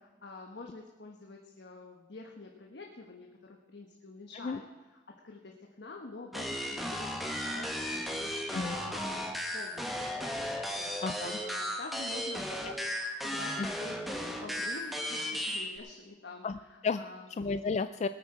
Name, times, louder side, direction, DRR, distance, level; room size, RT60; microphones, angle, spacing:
voice 1, 0.2-4.6 5.1-11.0 11.4-12.5 13.2-17.2, left 3 dB, 65° left, 1 dB, 1.2 m, -47 dB
sound 1, 6.3-15.8, equal, ahead, 1.1 m, -35 dB
voice 2, 11.0-11.4 12.5-12.7 13.6-13.7 16.4-16.6 16.8-17.0 17.4-18.1, left 4 dB, 40° left, 11 dB, 0.3 m, -32 dB
19.5 x 8.8 x 4.9 m, 1.2 s
head